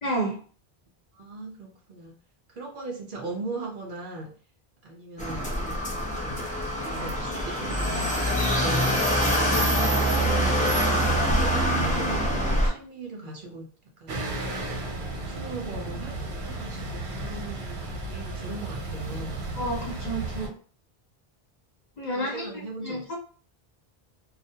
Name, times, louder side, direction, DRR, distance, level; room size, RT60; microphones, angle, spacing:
voice 1, 0.0-0.4 19.6-20.5 22.0-22.5 22.8-23.2, right 1 dB, 45° left, -2 dB, 0.8 m, -30 dB
voice 2, 1.1-2.2 2.5-4.3 4.8-5.8 6.1-9.0 9.7-13.7 14.0-14.2 14.8-19.4 22.1-23.0, right 3 dB, 60° right, 0 dB, 0.6 m, -39 dB
sound 1, 5.2-12.7, equal, 10° left, 0.4 m, -24 dB
sound 2, 14.1-20.5, right 2 dB, 85° right, 0.9 m, -34 dB
2.4 x 2.1 x 2.6 m, 0.40 s
omnidirectional pair, 1.0 m